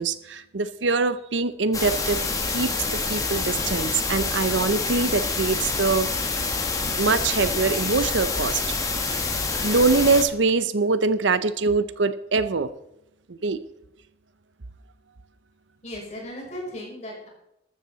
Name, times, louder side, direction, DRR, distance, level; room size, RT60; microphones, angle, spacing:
voice 1, 0.0-2.2 2.5-6.2 7.0-8.7 9.1-12.7 13.3-13.6, right 4 dB, 80° right, 13 dB, 0.8 m, -24 dB
sound 1, 1.7-10.2, left 4 dB, 20° left, 1.3 m, -27 dB
voice 2, 15.8-17.3, left 1 dB, 40° left, -2 dB, 5.7 m, -36 dB
14.0 x 13.0 x 4.1 m, 0.83 s
head